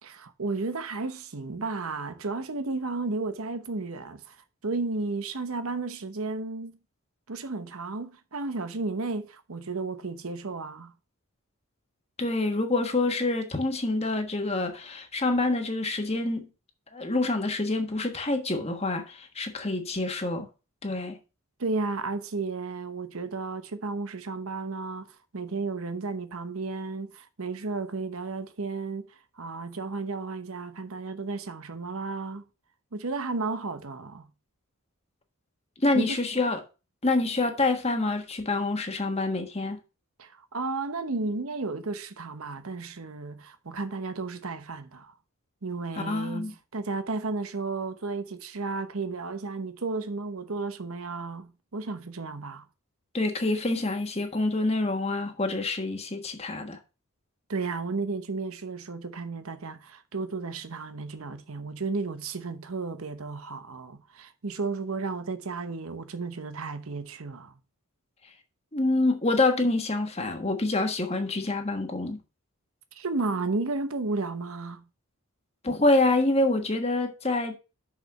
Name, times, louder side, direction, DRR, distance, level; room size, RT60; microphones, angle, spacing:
voice 1, 0.0-4.4 4.6-6.7 7.3-10.9 21.6-29.1 29.4-32.4 32.9-34.2 35.9-36.2 40.2-45.1 45.6-52.6 57.5-67.5 72.9-74.8, right 3 dB, 70° right, 0.9 m, -33 dB
voice 2, 12.2-16.5 16.9-20.5 20.8-21.2 35.8-36.6 37.0-39.8 45.9-46.5 53.1-56.8 68.7-72.2 75.6-77.6, left 2 dB, 30° left, 1.4 m, -26 dB
6.4 x 6.0 x 6.3 m
head